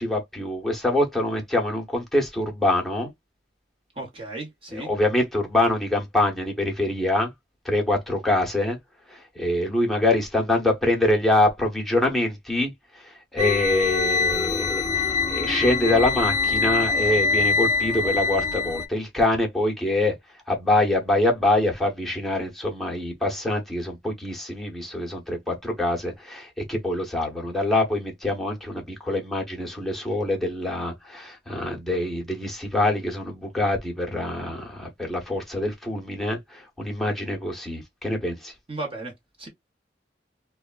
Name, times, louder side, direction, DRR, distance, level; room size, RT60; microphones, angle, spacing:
voice 1, 0.0-3.1 4.8-7.3 7.6-8.8 9.1-12.7 13.3-20.2 20.5-38.5, left 1 dB, ahead, 0.9 m, -25 dB
voice 2, 3.9-4.9 38.7-39.1 39.4-39.5, right 2 dB, 35° right, 1.0 m, -34 dB
sound 1, 13.4-18.9, left 4 dB, 20° left, 0.5 m, -24 dB
3.4 x 2.2 x 2.4 m
head